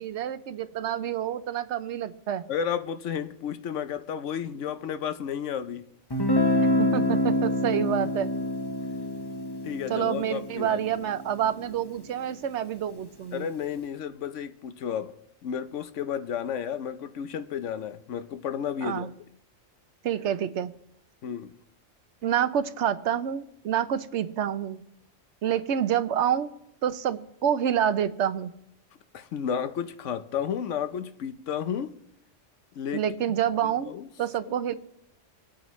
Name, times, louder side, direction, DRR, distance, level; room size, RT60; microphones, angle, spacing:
voice 1, 0.0-2.4 6.8-8.3 9.9-13.5 18.8-19.1 20.0-20.7 22.2-24.8 25.4-26.5 26.8-28.5 32.9-34.7, right 9 dB, 70° right, 0.9 m, -28 dB
voice 2, 2.5-5.9 9.6-10.9 13.3-15.1 15.4-19.1 21.2-21.5 29.1-31.9 32.8-33.0 33.6-34.1 34.4-34.7, left 8 dB, 80° left, 1.0 m, -32 dB
Guitar, 6.1-11.9, left 1 dB, 20° left, 0.9 m, -27 dB
26.0 x 8.8 x 3.1 m
omnidirectional pair, 1.2 m